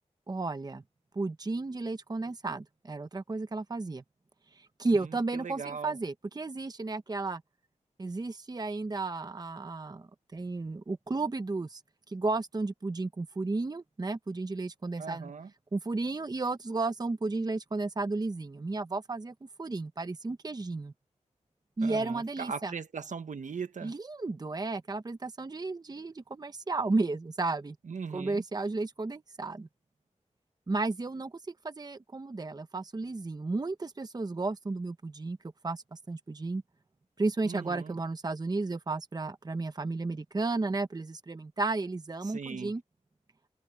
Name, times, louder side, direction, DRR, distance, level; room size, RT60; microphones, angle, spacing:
voice 1, 0.3-0.8 1.1-4.0 4.5-7.4 8.0-11.8 12.1-15.3 15.7-20.9 21.8-22.7 23.8-27.8 28.1-29.7 30.7-35.4 35.6-36.6 37.2-42.8, right 3 dB, 30° right, 0.9 m, -33 dB
voice 2, 4.9-6.0 15.0-15.5 21.8-24.0 27.8-28.4 37.4-38.0 42.2-42.7, right 5 dB, 75° right, 1.3 m, -39 dB
wide cardioid pair, 115°, 13 cm